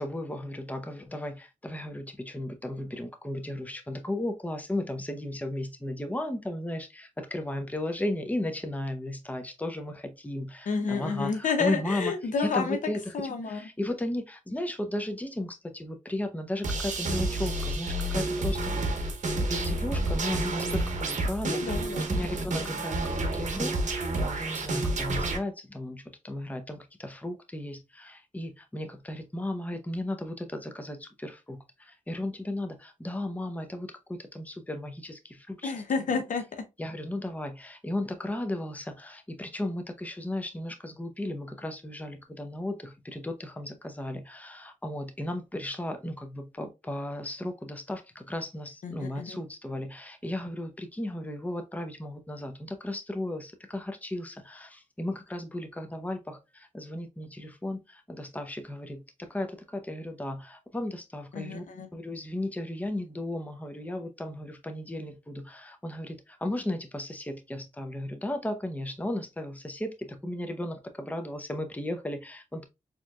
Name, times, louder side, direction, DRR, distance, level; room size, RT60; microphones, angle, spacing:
voice 1, 0.0-13.2 13.4-21.7 22.1-35.7 36.8-61.6 61.9-72.7, left 1 dB, 10° left, 0.7 m, -35 dB
voice 2, 10.7-12.8 13.1-13.6 21.4-22.0 22.6-22.8 35.6-36.4 48.8-49.4 61.3-61.9, left 5 dB, 70° left, 0.7 m, -30 dB
sound 1, 16.6-25.4, right 2 dB, 65° right, 0.8 m, -29 dB
4.2 x 2.9 x 2.3 m
cardioid pair, 55°, 14 cm